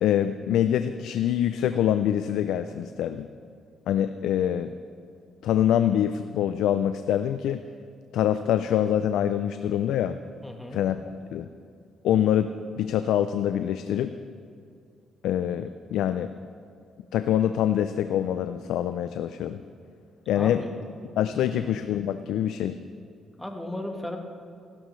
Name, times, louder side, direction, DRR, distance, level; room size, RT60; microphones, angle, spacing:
voice 1, 0.0-3.3 3.9-4.7 5.4-7.6 8.1-10.2 10.7-11.0 11.3-11.5 12.0-14.2 15.2-16.3 17.1-19.6 20.3-20.7 21.2-22.8, left 10 dB, 85° left, 10 dB, 0.4 m, -25 dB
voice 2, 10.4-10.8 20.3-20.7 21.3-21.6 23.4-24.2, left 1 dB, 5° left, 3 dB, 1.4 m, -35 dB
15.5 x 13.0 x 3.2 m, 2.3 s
cardioid pair, 90°, 0 cm